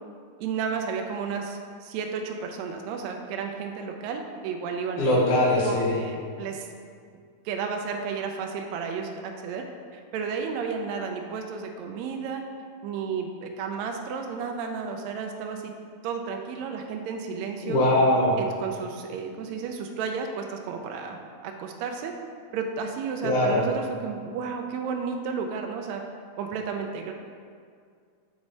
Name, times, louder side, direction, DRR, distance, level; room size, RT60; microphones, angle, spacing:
voice 1, 0.4-5.2 5.6-6.7 7.4-9.7 9.9-12.5 12.8-15.7 16.0-17.8 18.4-21.2 21.4-22.1 22.5-26.0 26.4-27.1, right 5 dB, 80° right, 3 dB, 1.7 m, -32 dB
voice 2, 5.0-5.9 17.6-18.4 23.2-23.6, left 1 dB, 75° left, -4 dB, 2.5 m, -21 dB
6.3 x 4.8 x 4.1 m, 2.1 s
omnidirectional pair, 3.6 m